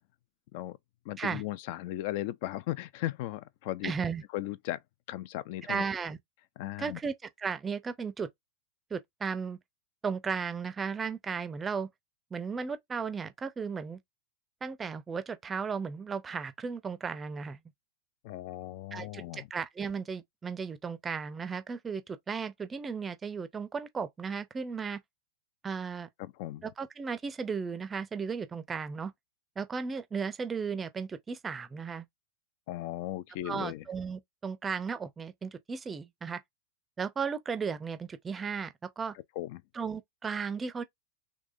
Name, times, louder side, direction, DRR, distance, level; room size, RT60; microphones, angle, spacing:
voice 1, 1.1-3.9 4.3-4.8 5.1-5.8 6.6-7.0 18.2-19.5 26.2-26.6 32.7-33.8 39.4-39.6, left 15 dB, 50° left, 0.3 m, -36 dB
voice 2, 3.8-4.2 5.7-6.2 6.8-8.3 8.9-9.6 10.0-11.9 12.3-14.0 14.6-17.6 18.9-25.0 25.6-26.1 26.6-29.1 29.6-32.1 33.4-36.4 37.0-39.1 39.7-40.8, right 5 dB, 15° right, 0.5 m, -35 dB
3.4 x 3.2 x 2.5 m
figure-of-eight pair, 90°, 0 cm